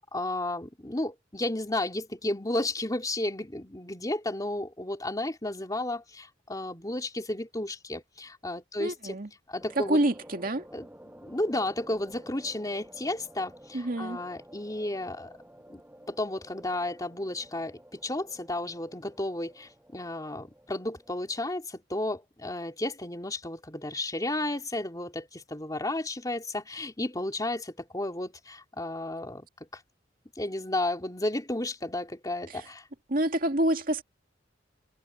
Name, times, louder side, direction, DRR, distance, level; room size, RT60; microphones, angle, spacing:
voice 1, 0.0-9.2 9.5-10.0 10.7-15.3 15.7-15.8 16.1-29.5 29.7-29.8 30.4-32.8, left 1 dB, 20° left, 3.0 m, -33 dB
voice 2, 8.8-9.3 9.8-10.7 13.7-14.2 32.5-32.7 33.1-34.0, right 1 dB, 50° right, 2.1 m, -27 dB
sound 1, 9.6-21.5, equal, 10° right, 6.4 m, -52 dB
head